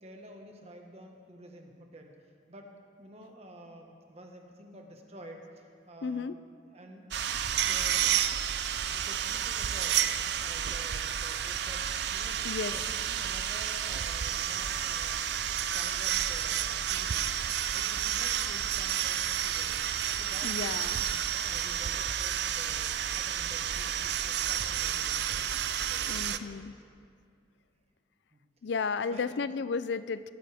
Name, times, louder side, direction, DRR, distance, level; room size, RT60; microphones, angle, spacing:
voice 1, 0.0-2.1 2.5-2.7 3.0-7.1 7.5-8.1 8.9-11.8 12.1-12.4 12.7-15.4 15.7-17.3 17.7-19.9 20.1-22.9 23.1-23.9 24.2-25.6 25.9-26.8 28.3-28.4 29.1-29.5, equal, 35° right, 2 dB, 1.5 m, -50 dB
voice 2, 6.0-6.4 12.4-12.8 20.4-21.1 26.1-26.7 28.6-30.3, left 5 dB, 75° left, 14 dB, 0.4 m, -33 dB
sound 1, 7.1-26.4, right 9 dB, 65° right, 0.5 m, -31 dB
19.5 x 14.5 x 3.6 m, 2.2 s
head